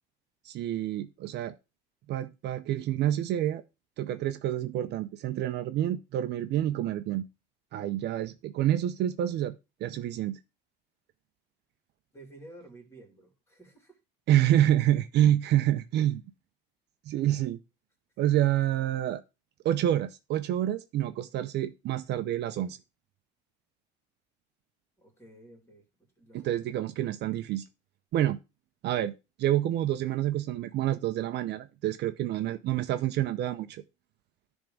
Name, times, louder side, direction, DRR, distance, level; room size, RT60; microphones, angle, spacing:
voice 1, 0.4-1.5 2.1-3.6 4.0-7.3 7.7-9.5 9.8-10.4 14.3-16.2 17.1-17.6 18.2-19.2 19.6-22.8 26.3-27.6 28.1-28.4 28.8-29.1 29.4-33.8, right 12 dB, 55° right, 0.6 m, -28 dB
voice 2, 12.1-14.0 25.0-26.8, right 1 dB, 10° left, 3.3 m, -52 dB
10.5 x 3.6 x 5.2 m
supercardioid pair, 110°, 21 cm